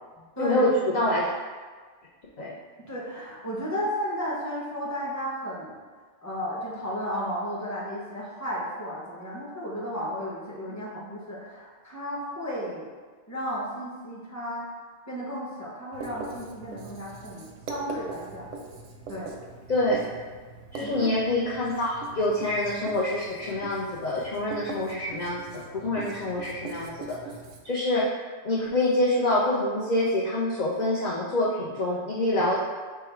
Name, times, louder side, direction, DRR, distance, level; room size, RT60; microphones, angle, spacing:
voice 1, 0.2-1.1 2.8-5.7 6.2-12.9 13.3-14.7 15.1-18.5 19.1-19.3 20.8-21.1, equal, 15° left, -5 dB, 0.9 m, -34 dB
voice 2, 0.9-1.3 2.4-2.5 19.7-20.0 20.7-27.2 27.6-28.1 28.4-32.6, left 1 dB, 50° left, -5 dB, 0.6 m, -26 dB
Writing, 15.9-27.6, right 3 dB, 85° right, 1.0 m, -42 dB
5.4 x 2.2 x 4.4 m, 1.5 s
omnidirectional pair, 1.2 m